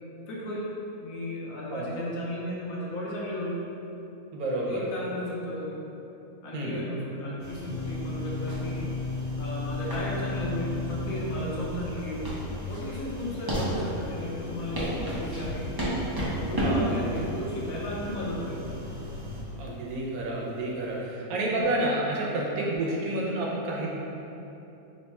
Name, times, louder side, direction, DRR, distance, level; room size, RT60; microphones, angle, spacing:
voice 1, 0.3-0.7 1.0-3.6 4.7-5.8 6.4-8.9 9.4-12.3 12.7-15.7 16.2-18.6, equal, 75° left, -4 dB, 1.1 m, -34 dB
voice 2, 4.3-4.8 6.5-6.8 16.6-16.9 19.6-23.9, right 1 dB, 80° right, -3 dB, 1.1 m, -29 dB
sound 1, 7.4-19.4, left 2 dB, 50° right, 0.7 m, -40 dB
sound 2, 7.6-11.9 13.6-19.6 21.6-22.8, left 2 dB, 30° left, 0.8 m, -38 dB
sound 3, 8.3-21.0, right 1 dB, 30° right, 0.4 m, -33 dB
3.1 x 2.2 x 4.1 m, 2.9 s
omnidirectional pair, 1.5 m